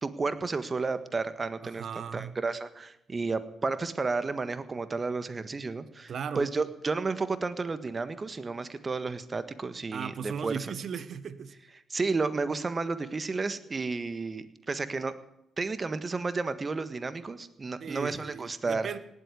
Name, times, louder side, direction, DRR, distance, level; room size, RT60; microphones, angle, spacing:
voice 1, 0.0-1.8 2.1-10.7 11.9-15.1 15.6-18.9, right 4 dB, 35° right, 12 dB, 1.5 m, -32 dB
voice 2, 1.6-2.3 6.1-6.5 9.9-11.5 17.8-19.0, right 7 dB, 60° right, 14 dB, 1.2 m, -37 dB
18.0 x 8.2 x 9.7 m, 0.83 s
supercardioid pair, 55°, 0 cm